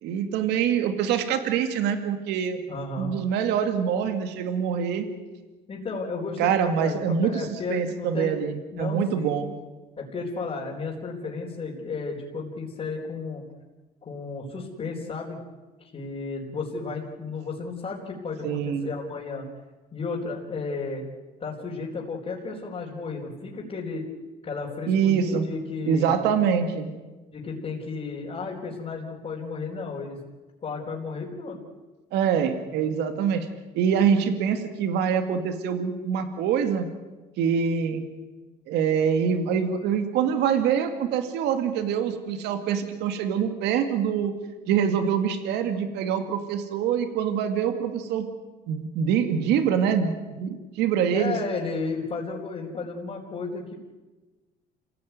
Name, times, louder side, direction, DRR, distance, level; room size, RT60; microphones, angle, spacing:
voice 1, 0.0-2.6 3.0-5.1 6.4-9.5 18.4-18.9 24.9-25.5 25.9-27.0 32.1-33.5 33.7-36.9 37.4-38.0 38.7-44.3 44.7-48.3 48.7-51.4, right 7 dB, 85° right, 7 dB, 2.3 m, -25 dB
voice 2, 2.7-3.2 5.7-8.4 8.7-9.3 10.0-13.4 14.0-15.4 15.8-19.4 19.9-21.0 21.4-24.1 24.4-26.1 27.3-30.2 30.6-31.6 51.1-53.7, left 4 dB, 35° left, -4 dB, 4.5 m, -33 dB
28.0 x 17.0 x 9.4 m, 1.2 s
cardioid pair, 110°, 17 cm